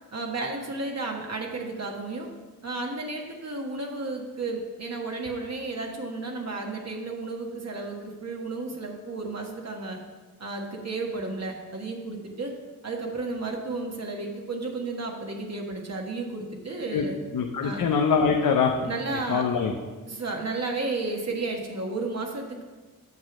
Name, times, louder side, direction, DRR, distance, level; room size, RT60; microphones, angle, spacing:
voice 1, 0.1-2.3 2.6-10.0 10.4-12.5 12.8-17.2 17.6-17.8 18.8-19.4 20.1-22.6, right 3 dB, 50° right, 1 dB, 1.4 m, -33 dB
voice 2, 17.3-18.9 19.3-19.7, left 6 dB, 80° left, 2 dB, 0.8 m, -23 dB
8.6 x 6.4 x 6.0 m, 1.3 s
cardioid pair, 85°, 33 cm